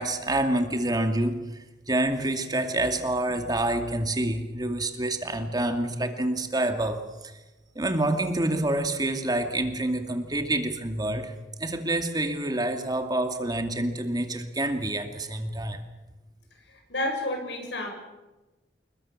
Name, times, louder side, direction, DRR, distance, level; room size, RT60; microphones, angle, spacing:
voice 1, 0.0-1.5 1.9-7.3 7.8-11.3 11.6-15.8, right 1 dB, 25° right, 6 dB, 2.4 m, -27 dB
voice 2, 16.7-17.9, left 1 dB, 80° left, 3 dB, 7.4 m, -30 dB
28.0 x 21.5 x 7.3 m, 1.1 s
head